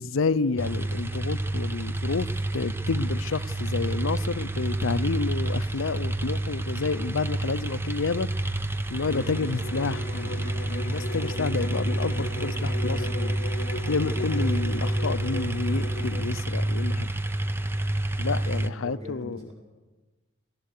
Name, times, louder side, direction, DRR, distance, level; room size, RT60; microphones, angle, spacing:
voice 1, 0.0-2.3 2.5-8.3 8.9-13.4 13.9-17.1 18.2-19.4, left 4 dB, 65° left, 16 dB, 0.6 m, -29 dB
sound 1, 0.6-18.7, right 2 dB, 10° right, 0.6 m, -29 dB
Bowed string instrument, 9.0-16.4, left 2 dB, 50° left, 0.9 m, -37 dB
voice 2, 18.2-19.5, left 1 dB, 30° right, 0 dB, 6.5 m, -41 dB
23.0 x 18.0 x 6.7 m, 1.2 s
head